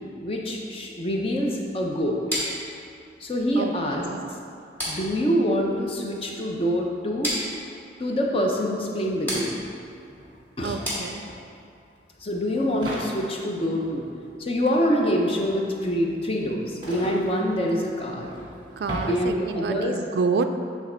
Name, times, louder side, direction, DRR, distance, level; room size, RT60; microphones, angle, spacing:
voice 1, 0.2-2.2 3.2-4.0 4.8-7.3 8.0-9.5 10.6-10.8 12.2-14.1 14.4-18.3 19.0-20.0, equal, 30° left, 0 dB, 0.6 m, -25 dB
sound 1, 2.3-11.6, equal, 10° left, 1.5 m, -35 dB
voice 2, 3.6-4.3 10.6-11.3 18.8-20.4, right 4 dB, 60° right, 8 dB, 0.3 m, -28 dB
sound 2, 9.0-9.1 9.3-19.8, equal, 25° right, 1.4 m, -39 dB
8.2 x 3.5 x 4.3 m, 2.5 s
head